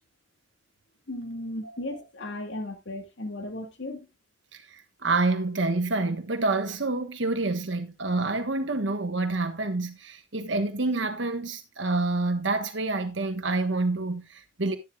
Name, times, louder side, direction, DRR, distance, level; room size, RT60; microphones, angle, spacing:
voice 1, 1.1-4.1, left 1 dB, 75° left, 2.1 m, -36 dB
voice 2, 4.5-14.8, right 3 dB, 75° right, 1.3 m, -27 dB
11.5 x 11.0 x 2.4 m
head